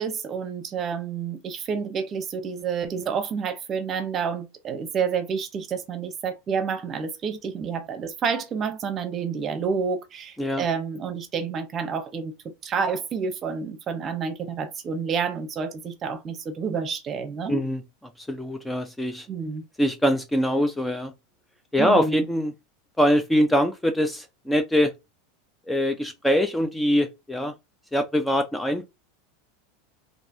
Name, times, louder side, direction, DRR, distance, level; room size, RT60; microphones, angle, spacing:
voice 1, 0.0-17.6 19.3-19.6 21.8-22.3, right 6 dB, 35° right, 0.7 m, -29 dB
voice 2, 17.5-17.8 18.2-19.3 19.8-21.1 21.7-22.5 23.0-24.9 25.7-27.5 27.9-28.9, equal, 5° left, 0.4 m, -23 dB
3.2 x 2.6 x 2.6 m
supercardioid pair, 115°, 0 cm